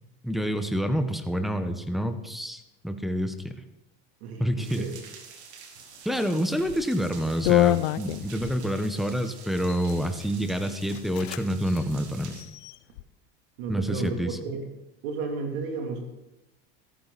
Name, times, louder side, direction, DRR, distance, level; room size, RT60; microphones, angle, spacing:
voice 1, 0.2-3.6 4.4-4.9 6.0-12.3 13.7-14.4, equal, ahead, 7 dB, 1.2 m, -28 dB
voice 2, 4.2-5.0 13.6-14.2 14.4-14.6 15.0-16.0, right 4 dB, 70° right, 3 dB, 3.3 m, -33 dB
sound 1, 4.6-12.4, right 6 dB, 90° right, 2.4 m, -48 dB
sound 2, 6.6-6.9 7.4-8.6 9.5-10.0 10.6-10.7 10.9-11.4 11.7-11.8 12.3-13.0, left 16 dB, 75° left, 0.6 m, -26 dB
14.5 x 13.5 x 4.2 m, 0.94 s
supercardioid pair, 100°, 33 cm